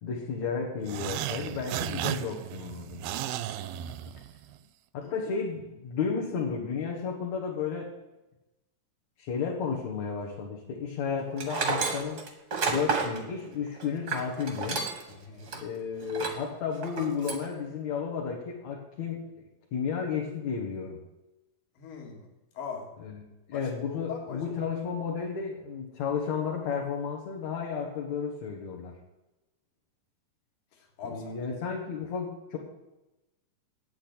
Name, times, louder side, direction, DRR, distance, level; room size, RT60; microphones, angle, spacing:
voice 1, 0.0-3.0 4.9-7.9 9.2-12.2 12.7-14.9 15.6-19.3 19.7-21.0 23.0-23.2 23.5-28.9 31.1-32.6, left 6 dB, 55° left, -2 dB, 2.5 m, -33 dB
sound 1, 0.8-4.6, right 11 dB, 85° right, 2.4 m, -35 dB
Tools, 11.4-15.1 15.5-15.6 16.1-16.5 16.8-17.5, right 4 dB, 55° right, 1.1 m, -31 dB
voice 2, 15.1-15.5 21.8-22.3 22.6-22.9 23.5-24.6 31.0-31.3, left 5 dB, 75° left, 2 dB, 3.5 m, -41 dB
8.8 x 8.3 x 8.8 m, 1.0 s
omnidirectional pair, 4.1 m